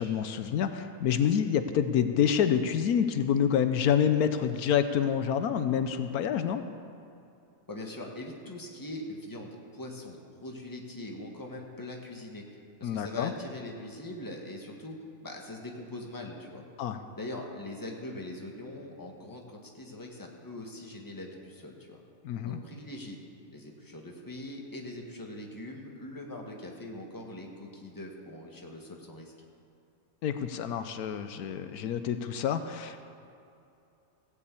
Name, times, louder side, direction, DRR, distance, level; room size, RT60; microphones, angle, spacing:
voice 1, 0.0-6.6 12.8-13.3 16.8-17.0 22.2-22.6 30.2-33.1, left 8 dB, 80° left, 9 dB, 1.2 m, -27 dB
voice 2, 7.7-16.6 17.1-22.0 22.4-23.2 23.5-29.3, left 1 dB, 15° left, 0 dB, 1.5 m, -42 dB
16.0 x 7.2 x 8.4 m, 2.6 s
omnidirectional pair, 1.6 m